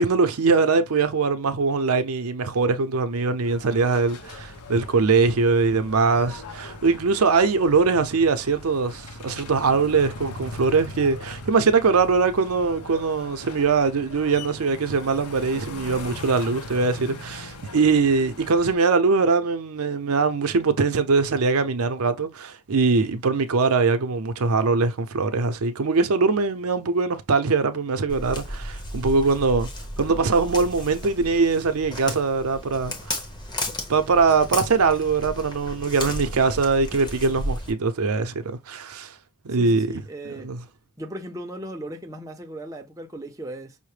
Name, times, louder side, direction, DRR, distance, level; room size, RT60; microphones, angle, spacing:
voice 1, 0.0-29.7 30.0-33.2 33.9-39.1 39.4-40.0 40.4-40.6, right 4 dB, 75° right, 0.6 m, -22 dB
sound 1, 3.4-18.8, left 2 dB, 85° left, 0.8 m, -40 dB
Walk footsteps, 28.1-37.7, left 1 dB, 20° left, 0.9 m, -34 dB
voice 2, 39.5-40.5 41.0-43.8, right 1 dB, 15° right, 0.5 m, -37 dB
5.6 x 2.1 x 3.2 m
head